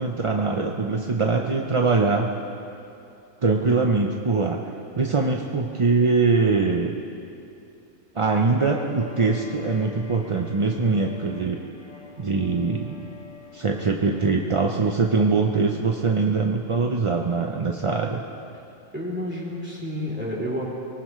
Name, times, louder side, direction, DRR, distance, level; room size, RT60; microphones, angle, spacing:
voice 1, 0.0-2.3 3.4-4.6 4.9-7.0 8.1-11.6 12.2-13.0 13.5-18.2, right 4 dB, 35° right, 1 dB, 0.6 m, -22 dB
Bowed string instrument, 8.6-14.6, left 4 dB, 85° left, 2.6 m, -43 dB
voice 2, 18.9-20.7, equal, 10° right, -5 dB, 3.0 m, -30 dB
24.0 x 18.5 x 3.2 m, 2.7 s
omnidirectional pair, 1.4 m